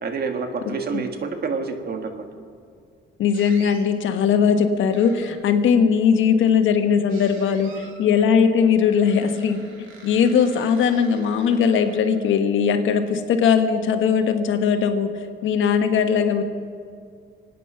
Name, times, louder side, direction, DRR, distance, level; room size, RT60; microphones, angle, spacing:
voice 1, 0.0-2.3, right 4 dB, 50° right, 5 dB, 1.8 m, -28 dB
voice 2, 3.2-16.4, left 6 dB, 80° left, 7 dB, 1.3 m, -19 dB
sound 1, 3.3-3.8 4.9-5.6 7.1-8.1 8.8-12.3, right 4 dB, 90° right, 2.5 m, -47 dB
25.0 x 9.3 x 5.7 m, 2.2 s
cardioid pair, 90°, 20 cm